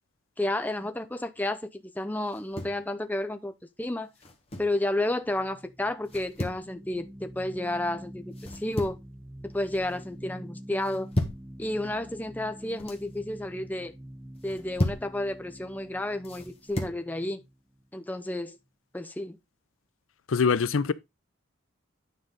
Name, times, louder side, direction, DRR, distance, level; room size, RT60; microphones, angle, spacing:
voice 1, 0.4-4.1 4.6-8.2 8.5-9.0 9.4-11.1 11.6-13.9 14.4-17.4 17.9-18.6 18.9-19.4, left 1 dB, 10° left, 0.6 m, -31 dB
sound 1, 2.3-2.8 4.1-4.8 6.1-6.6 8.3-9.1 9.5-10.0 10.8-11.5 12.5-13.0 14.4-15.1 16.2-17.0, left 1 dB, 30° left, 1.4 m, -34 dB
sound 2, 4.9-18.1, equal, 15° right, 1.2 m, -46 dB
voice 2, 20.3-20.9, left 5 dB, 85° left, 0.5 m, -23 dB
9.8 x 5.0 x 3.9 m
head